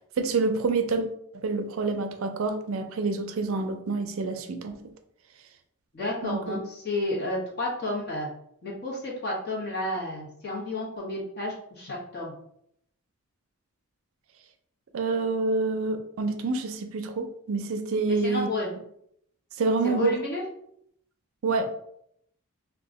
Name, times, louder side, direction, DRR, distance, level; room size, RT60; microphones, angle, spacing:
voice 1, 0.2-4.7 6.2-6.6 14.9-18.5 19.6-20.2 21.4-21.7, right 3 dB, 65° right, 6 dB, 0.4 m, -27 dB
voice 2, 5.9-8.3 8.6-12.3 18.1-18.7 19.8-20.4, left 2 dB, 50° left, -4 dB, 1.1 m, -31 dB
2.9 x 2.3 x 3.7 m, 0.71 s
head